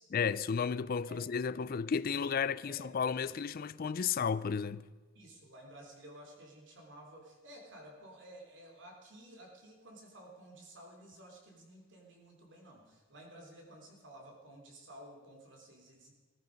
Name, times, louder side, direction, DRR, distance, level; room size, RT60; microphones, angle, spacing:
voice 1, 0.1-4.8, left 6 dB, 45° left, 0.4 m, -33 dB
voice 2, 1.1-1.5 2.1-2.3 2.6-3.5 5.1-16.1, right 1 dB, 60° right, 3.2 m, -54 dB
17.0 x 14.5 x 5.2 m
head